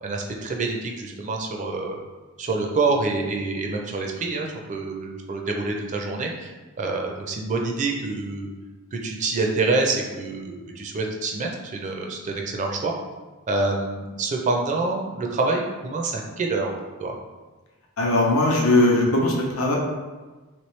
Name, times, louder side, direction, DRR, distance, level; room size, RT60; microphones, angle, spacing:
voice 1, 0.0-2.0 2.4-8.5 8.9-12.9 13.5-16.7 17.0-17.1, right 3 dB, 35° right, 1 dB, 0.4 m, -26 dB
voice 2, 18.0-19.7, left 2 dB, 85° left, -1 dB, 0.7 m, -19 dB
3.0 x 3.0 x 3.1 m, 1.2 s
head